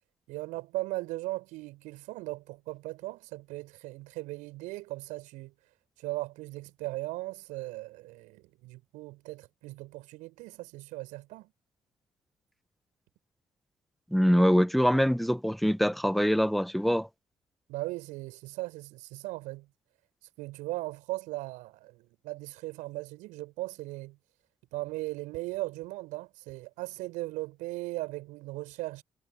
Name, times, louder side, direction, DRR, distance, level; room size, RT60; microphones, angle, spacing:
voice 1, 0.3-5.5 6.0-11.5 17.7-19.7 20.4-24.2 24.7-29.0, right 20 dB, 70° right, 5.3 m, -38 dB
voice 2, 14.1-17.1, equal, ahead, 1.7 m, -24 dB
figure-of-eight pair, 40°, 13 cm